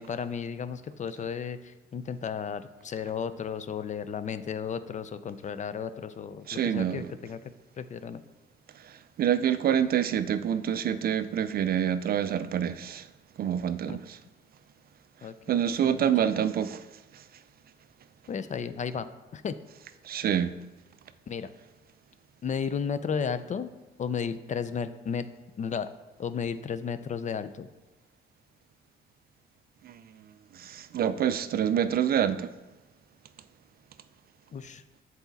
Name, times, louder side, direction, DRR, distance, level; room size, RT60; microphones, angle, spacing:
voice 1, 0.0-7.4 7.8-8.2 13.9-14.0 15.2-16.3 18.3-19.1 19.3-19.5 21.3-21.5 22.4-23.7 24.0-25.2 25.6-25.9 26.2-27.7 34.5-34.8, left 6 dB, 40° left, 0.4 m, -34 dB
voice 2, 6.5-7.1 8.8-8.9 9.2-13.1 13.4-14.2 15.5-16.8 20.0-20.6 29.8-30.0 30.5-32.5, right 9 dB, 50° right, 0.4 m, -27 dB
7.1 x 4.1 x 4.0 m
cardioid pair, 90°, 20 cm